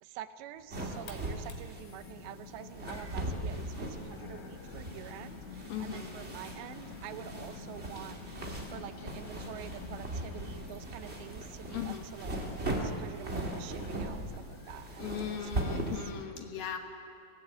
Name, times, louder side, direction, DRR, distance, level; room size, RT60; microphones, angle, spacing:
voice 1, 0.0-16.0, right 12 dB, 85° right, 11 dB, 3.0 m, -47 dB
sound 1, 0.6-16.3, left 4 dB, 85° left, 4.2 m, -49 dB
sound 2, 0.7-16.1, right 1 dB, 40° right, 0.9 m, -39 dB
voice 2, 5.7-6.1 11.7-12.0 15.0-16.8, left 8 dB, 65° left, 4 dB, 2.7 m, -38 dB
25.0 x 17.5 x 8.0 m, 2.4 s
omnidirectional pair, 5.0 m